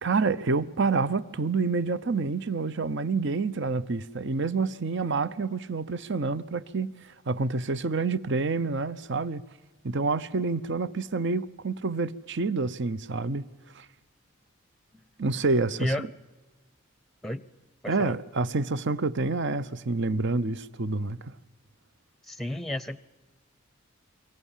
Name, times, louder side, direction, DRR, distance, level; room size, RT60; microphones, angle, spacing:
voice 1, 0.0-9.4 9.8-13.5 13.7-13.9 15.2-16.1 17.9-21.3, right 3 dB, 55° right, 0.8 m, -28 dB
voice 2, 17.8-18.2 22.2-23.0, left 1 dB, ahead, 0.7 m, -32 dB
28.0 x 24.0 x 7.4 m
head